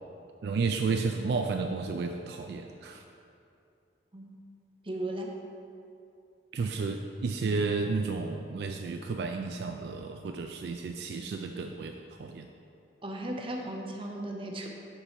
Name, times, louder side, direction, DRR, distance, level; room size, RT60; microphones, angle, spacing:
voice 1, 0.4-3.0 6.5-12.5, right 4 dB, 60° right, 4 dB, 0.3 m, -32 dB
voice 2, 4.8-5.3 13.0-14.7, right 1 dB, 30° right, 1 dB, 0.7 m, -36 dB
7.1 x 5.3 x 4.3 m, 2.6 s
head